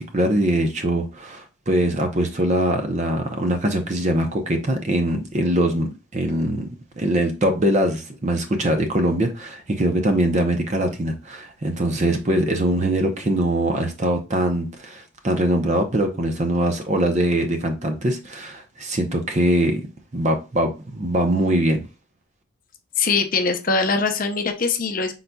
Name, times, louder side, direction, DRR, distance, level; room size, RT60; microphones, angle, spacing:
voice 1, 0.0-19.8 20.1-21.8, right 1 dB, 35° right, 0.7 m, -22 dB
voice 2, 23.0-25.2, left 4 dB, 40° left, 0.6 m, -22 dB
5.7 x 3.8 x 2.3 m
head